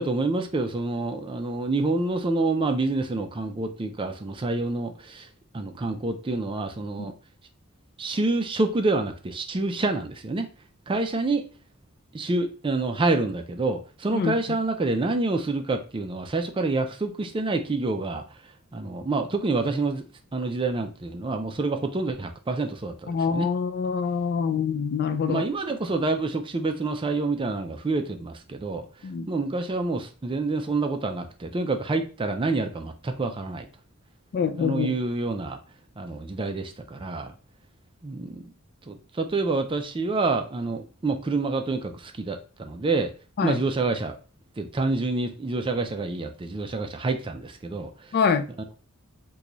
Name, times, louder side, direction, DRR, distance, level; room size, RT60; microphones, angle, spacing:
voice 1, 0.0-5.3 5.5-7.1 8.0-10.5 10.9-11.4 12.1-18.2 18.7-20.0 20.3-23.5 25.1-28.8 29.3-33.7 34.6-35.6 36.0-37.3 38.0-38.5 38.9-43.1 43.4-44.1 44.6-47.9, right 3 dB, 25° right, 0.4 m, -27 dB
voice 2, 23.1-25.4 29.0-29.3 34.3-34.9 43.4-43.6 48.1-48.4, left 6 dB, 45° left, 0.3 m, -25 dB
3.0 x 2.3 x 3.8 m
head